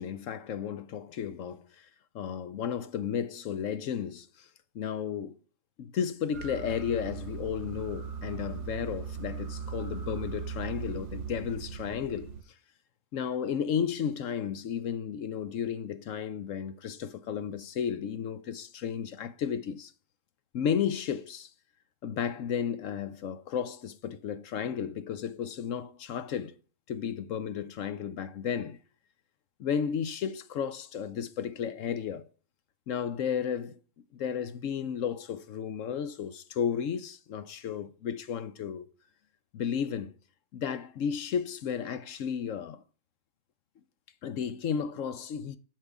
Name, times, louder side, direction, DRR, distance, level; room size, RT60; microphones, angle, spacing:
voice 1, 0.0-1.9 2.1-4.5 4.7-5.4 5.8-12.3 13.1-19.9 20.5-21.5 22.0-26.5 26.9-28.8 29.6-32.2 32.9-33.8 34.1-38.9 39.5-40.1 40.5-42.8 44.2-45.6, left 8 dB, 65° left, 0.9 m, -33 dB
sound 1, 6.3-12.4, right 6 dB, 60° right, 0.9 m, -39 dB
7.6 x 6.6 x 3.5 m
omnidirectional pair, 1.6 m